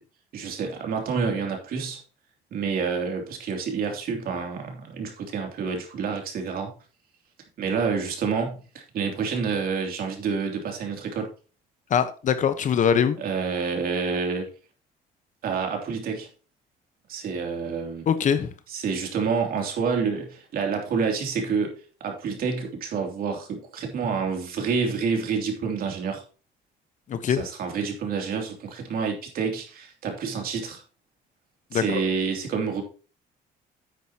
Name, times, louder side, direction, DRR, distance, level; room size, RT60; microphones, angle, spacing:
voice 1, 0.3-2.0 2.5-6.7 7.6-11.3 13.2-14.5 15.4-16.3 17.1-18.1 18.7-21.7 22.0-26.2 27.3-30.8 31.7-32.8, right 5 dB, 60° right, 3 dB, 3.0 m, -28 dB
voice 2, 11.9-13.2 18.1-18.5 27.1-27.4 31.7-32.0, left 7 dB, 50° left, 11 dB, 1.1 m, -22 dB
10.5 x 8.3 x 2.9 m, 0.35 s
cardioid pair, 110°, 17 cm